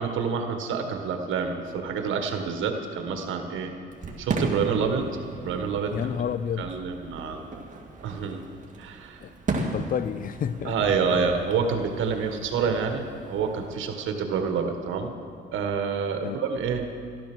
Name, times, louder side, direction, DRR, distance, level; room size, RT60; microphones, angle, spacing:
voice 1, 0.0-3.7 4.2-5.0 5.3-5.9 6.6-7.6 8.0-8.4 8.8-9.2 10.6-15.1 15.5-16.8, right 5 dB, 80° right, 1.5 m, -27 dB
Fireworks, 3.9-13.8, right 3 dB, 40° right, 2.1 m, -36 dB
voice 2, 5.9-6.8 9.2-10.8 16.2-16.4, left 8 dB, 45° left, 0.4 m, -30 dB
13.0 x 12.5 x 6.2 m
cardioid pair, 90°, 20 cm